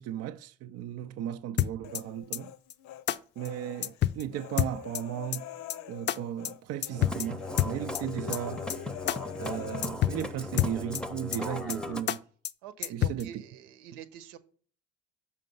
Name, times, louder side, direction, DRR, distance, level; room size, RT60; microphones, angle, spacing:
voice 1, 0.0-2.5 3.4-5.5 5.9-8.6 9.4-12.2 12.9-13.4, right 10 dB, 55° right, 0.5 m, -36 dB
sound 1, 1.6-2.0 2.3-2.4 2.7-2.8 3.1-3.2 3.4-3.5 3.8-4.2 4.6-5.0 5.3-5.4 5.7-5.8 6.1-6.2 6.4-6.5 6.8-7.3 7.6-8.0 8.3-8.4 8.7-8.8 9.1-9.2 9.4-9.5 9.8-10.2 10.6-11.0 11.3-11.4 11.7-11.8 12.1-12.2 12.4-12.5 12.8-13.2, left 12 dB, 40° left, 0.5 m, -27 dB
Human voice, 1.8-3.0 3.4-6.6 6.8-7.1 7.4-9.8, left 13 dB, 70° left, 0.7 m, -45 dB
Musical instrument, 7.0-12.0, left 2 dB, 5° left, 0.7 m, -37 dB
voice 2, 12.6-14.4, right 10 dB, 90° right, 1.0 m, -46 dB
6.5 x 5.3 x 5.4 m
supercardioid pair, 95°, 30 cm